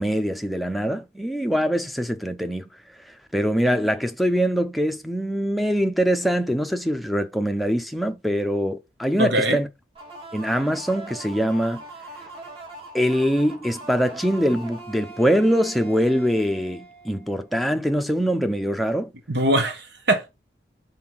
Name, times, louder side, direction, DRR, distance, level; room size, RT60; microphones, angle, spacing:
voice 1, 0.0-2.7 3.3-9.7 10.3-11.8 12.9-19.1, equal, ahead, 0.5 m, -23 dB
voice 2, 9.2-9.6 19.3-20.3, right 1 dB, 75° right, 1.3 m, -22 dB
sound 1, 9.9-17.5, right 2 dB, 30° right, 2.4 m, -41 dB
5.8 x 3.8 x 6.0 m
head